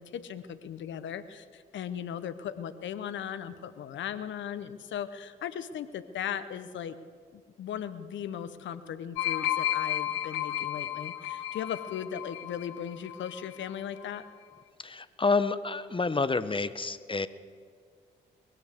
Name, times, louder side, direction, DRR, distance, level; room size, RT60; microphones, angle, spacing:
voice 1, 0.0-7.0 7.3-14.2, left 9 dB, 70° left, 13 dB, 0.9 m, -37 dB
sound 1, 9.2-13.7 14.0-14.3, left 12 dB, 85° left, 0.7 m, -33 dB
voice 2, 14.8-17.3, left 4 dB, 25° left, 14 dB, 0.9 m, -28 dB
21.0 x 16.0 x 3.6 m, 2.1 s
hypercardioid pair, 45°, 20 cm